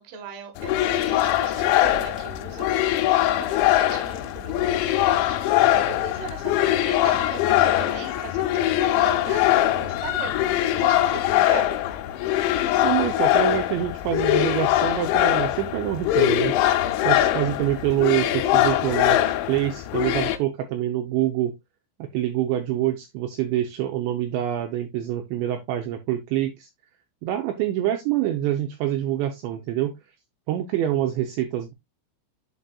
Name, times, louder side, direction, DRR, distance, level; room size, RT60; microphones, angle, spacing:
voice 1, 0.0-10.4 10.7-11.7, right 5 dB, 60° right, 4 dB, 2.5 m, -39 dB
sound 1, 0.6-20.4, left 13 dB, 80° left, 3.1 m, -22 dB
voice 2, 12.8-16.5 17.0-21.5 22.0-26.7 27.2-29.9 30.5-31.7, right 12 dB, 80° right, 5 dB, 2.8 m, -26 dB
11.0 x 4.1 x 2.3 m, 0.20 s
omnidirectional pair, 5.5 m